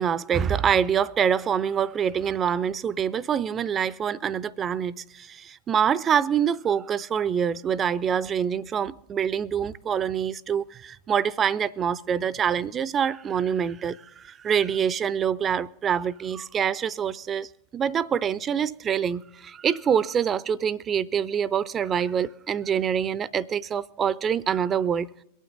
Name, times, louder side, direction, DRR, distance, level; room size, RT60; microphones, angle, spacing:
voice 1, 0.0-25.1, right 8 dB, 25° right, 0.4 m, -25 dB
23.0 x 9.0 x 3.9 m
figure-of-eight pair, 90°, 0 cm